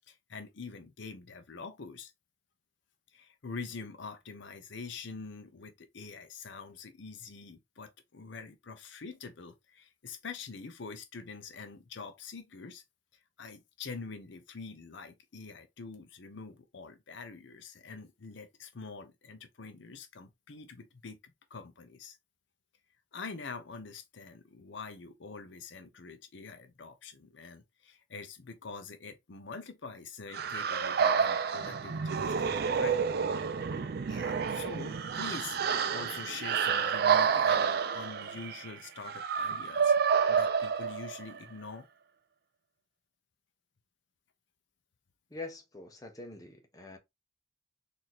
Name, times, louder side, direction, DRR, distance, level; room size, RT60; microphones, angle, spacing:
voice 1, 0.1-2.1 3.1-12.8 13.4-22.2 23.1-33.0 34.1-39.9 40.3-41.9, left 4 dB, 70° left, 0.7 m, -45 dB
sound 1, 30.3-41.4, right 6 dB, 55° right, 0.4 m, -29 dB
Bowed string instrument, 31.4-35.9, right 1 dB, 30° right, 1.0 m, -52 dB
voice 2, 45.3-47.0, left 2 dB, 20° left, 0.8 m, -44 dB
4.0 x 2.7 x 2.9 m
head